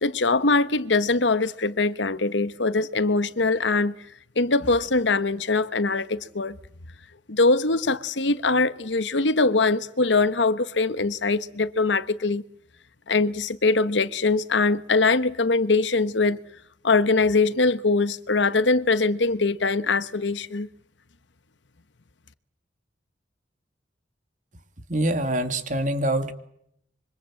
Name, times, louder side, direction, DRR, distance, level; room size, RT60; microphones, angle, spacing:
voice 1, 0.0-3.9 4.4-6.6 7.3-12.4 13.1-16.4 16.8-20.7, left 3 dB, 80° left, 1.2 m, -22 dB
voice 2, 24.9-26.3, right 1 dB, 45° right, 2.6 m, -24 dB
26.5 x 24.5 x 7.7 m
head